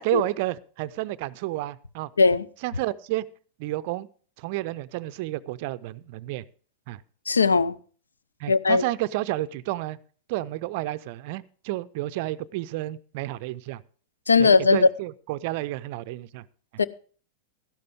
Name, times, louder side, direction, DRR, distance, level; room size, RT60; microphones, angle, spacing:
voice 1, 0.0-2.1 2.6-3.3 3.6-4.1 4.4-6.4 6.9-7.0 8.4-10.0 10.3-13.8 14.4-16.4, right 16 dB, 50° right, 0.4 m, -30 dB
voice 2, 7.3-7.8 8.5-8.8 14.3-14.8 16.8-16.9, left 4 dB, 75° left, 0.4 m, -19 dB
13.0 x 11.5 x 3.5 m
figure-of-eight pair, 90°, 0 cm